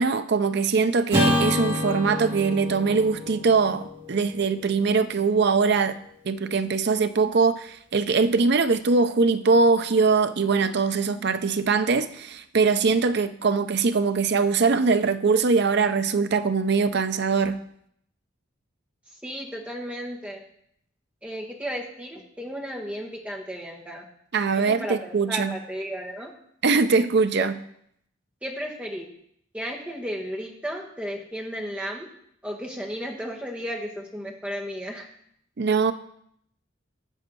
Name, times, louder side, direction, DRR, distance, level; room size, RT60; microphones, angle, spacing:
voice 1, 0.0-6.0 6.2-17.6 24.3-25.5 26.6-27.5 35.6-35.9, right 4 dB, 55° right, 0.5 m, -22 dB
Acoustic guitar / Strum, 1.1-5.5, left 1 dB, 30° right, 4.2 m, -28 dB
voice 2, 19.2-20.4 21.2-24.0 24.5-26.3 27.4-27.5 28.4-29.1 29.5-32.1 32.4-35.1, equal, 5° right, 1.4 m, -34 dB
7.7 x 7.2 x 6.2 m
head